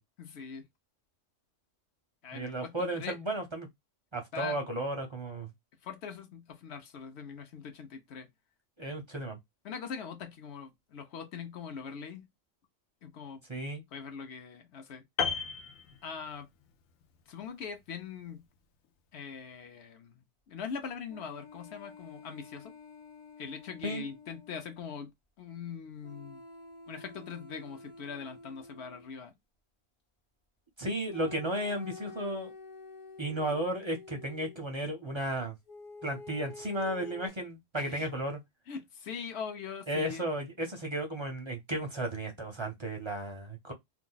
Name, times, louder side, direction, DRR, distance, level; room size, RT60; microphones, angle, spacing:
voice 1, 0.2-0.7 2.2-3.2 4.3-4.6 5.8-8.3 9.6-12.3 13.0-13.4 13.9-15.0 16.0-16.5 17.3-18.5 19.1-22.7 23.4-25.1 25.4-26.4 26.9-29.3 37.8-38.1 38.7-40.2, left 6 dB, 60° left, 0.9 m, -42 dB
voice 2, 2.3-3.7 4.1-5.5 8.8-9.4 13.5-13.8 23.8-24.0 30.8-32.5 33.2-35.6 36.0-38.4 39.9-43.7, right 1 dB, 35° right, 0.5 m, -34 dB
Piano, 15.2-16.6 16.9-17.1, left 6 dB, 85° left, 1.0 m, -34 dB
sound 1, 21.1-24.8 26.0-29.1 31.1-34.6 35.7-37.3, left 3 dB, 30° left, 0.7 m, -49 dB
2.6 x 2.3 x 3.8 m
omnidirectional pair, 1.4 m